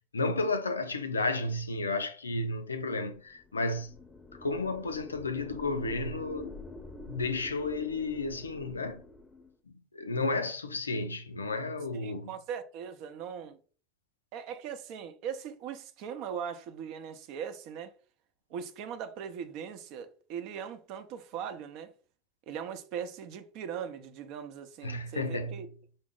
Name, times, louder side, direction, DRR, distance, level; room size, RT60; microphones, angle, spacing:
voice 1, 0.1-3.9 4.4-6.6 7.1-9.0 9.7-12.3 24.8-25.6, left 3 dB, 90° left, 0.4 m, -32 dB
sound 1, 3.4-9.6, left 2 dB, 15° left, 0.6 m, -46 dB
voice 2, 11.9-13.6 14.3-17.9 18.5-21.9 22.5-25.7, right 8 dB, 55° right, 0.6 m, -40 dB
5.2 x 2.0 x 3.7 m
hypercardioid pair, 75°, 0 cm